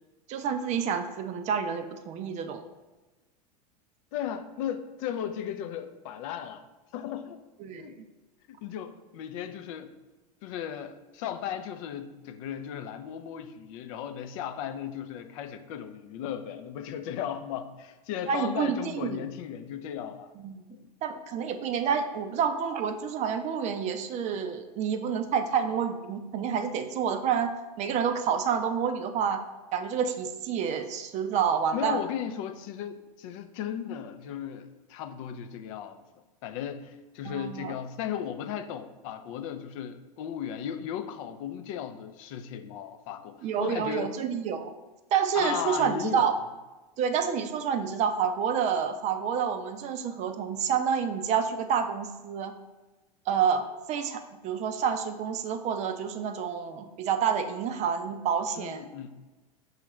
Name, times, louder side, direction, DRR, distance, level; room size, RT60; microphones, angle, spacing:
voice 1, 0.3-2.6 7.6-7.9 18.3-19.2 20.4-20.6 21.0-27.5 27.8-29.4 29.7-32.0 37.2-37.7 43.4-44.7 45.1-46.3 47.0-52.5 53.3-53.6 53.9-58.9, right 7 dB, 35° right, 8 dB, 0.4 m, -28 dB
voice 2, 4.1-6.6 6.9-7.4 7.8-7.9 8.6-9.9 10.4-20.3 20.8-20.9 31.7-36.0 36.4-44.1 45.3-46.3 58.6-59.1, left 9 dB, 55° left, 8 dB, 0.5 m, -36 dB
6.3 x 2.4 x 3.1 m, 1.2 s
hypercardioid pair, 100°, 20 cm